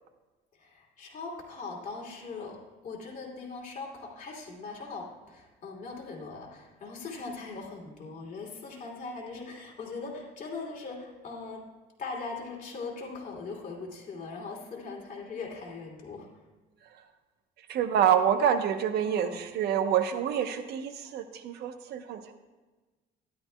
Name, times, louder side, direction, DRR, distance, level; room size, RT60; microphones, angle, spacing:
voice 1, 0.5-11.7 12.0-16.3 19.0-19.5, left 4 dB, 50° left, -2 dB, 2.7 m, -40 dB
voice 2, 17.7-22.3, right 9 dB, 75° right, 8 dB, 0.9 m, -27 dB
13.0 x 11.0 x 2.2 m, 1.2 s
cardioid pair, 110°, 17 cm